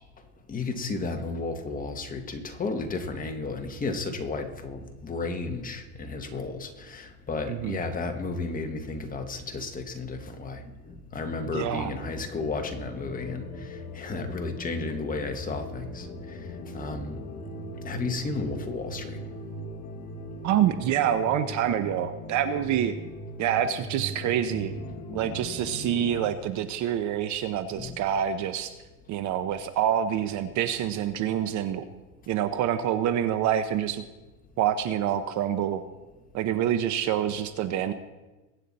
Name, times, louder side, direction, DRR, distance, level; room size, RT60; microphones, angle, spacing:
voice 1, 0.5-16.4 16.7-17.2 17.8-19.2 27.8-28.0, left 3 dB, 20° left, 4 dB, 1.4 m, -33 dB
voice 2, 7.5-7.8 11.5-11.9 20.4-22.9 23.4-24.7 25.1-28.7 29.1-31.8 32.3-34.0 34.6-35.8 36.3-37.9, right 10 dB, 40° right, 10 dB, 0.9 m, -26 dB
sound 1, 11.9-26.3, left 1 dB, 35° left, 1.8 m, -40 dB
22.5 x 9.2 x 4.1 m, 1.1 s
supercardioid pair, 135°, 45 cm